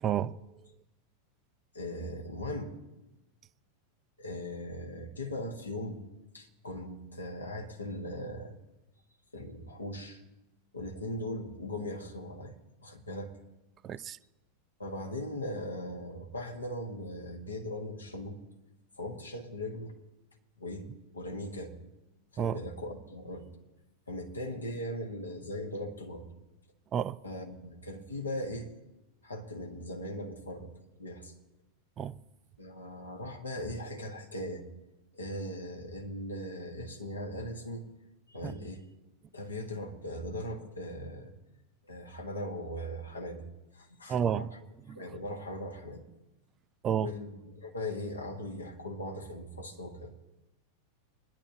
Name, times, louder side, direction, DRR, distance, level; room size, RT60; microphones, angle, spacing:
voice 1, 0.0-0.4 13.8-14.2 22.4-22.6 26.9-27.2 32.0-32.1 38.4-38.5 44.1-44.5 44.9-45.0 46.8-47.1, right 8 dB, 30° right, 0.4 m, -30 dB
voice 2, 1.7-2.8 4.2-6.0 6.3-8.6 9.3-10.2 10.7-12.5 12.8-13.4 14.8-18.4 19.0-19.9 20.6-20.9 21.1-21.7 22.3-23.5 24.1-26.3 27.2-28.7 29.2-30.7 31.0-31.3 32.6-34.7 35.1-37.8 38.3-38.8 39.3-41.3 41.9-43.4 43.7-44.6 44.9-46.1 47.0-50.1, left 1 dB, 80° left, 1.7 m, -39 dB
24.0 x 10.5 x 3.0 m
figure-of-eight pair, 90°, 0 cm